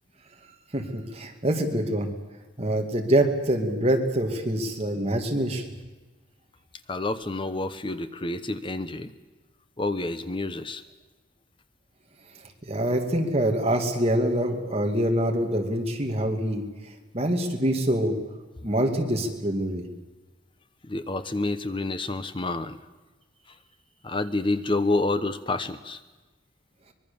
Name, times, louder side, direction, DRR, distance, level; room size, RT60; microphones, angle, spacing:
voice 1, 0.7-2.1 2.6-5.7 12.6-16.6 17.1-18.1 18.6-19.8, right 1 dB, 30° right, 3 dB, 2.4 m, -25 dB
voice 2, 6.9-9.1 9.8-10.8 20.8-22.8 24.0-26.0, left 2 dB, 25° left, 11 dB, 0.9 m, -28 dB
24.0 x 22.0 x 7.1 m, 1.2 s
head